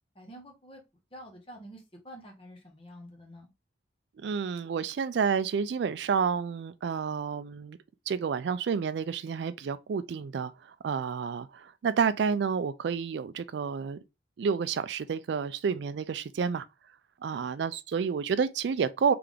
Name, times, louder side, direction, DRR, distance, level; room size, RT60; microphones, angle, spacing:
voice 1, 0.1-0.8 1.1-3.5, equal, 30° left, 1.1 m, -48 dB
voice 2, 4.2-7.8 8.1-14.0 14.4-16.6 17.2-19.1, right 6 dB, 65° right, 0.3 m, -30 dB
3.4 x 3.4 x 3.7 m
head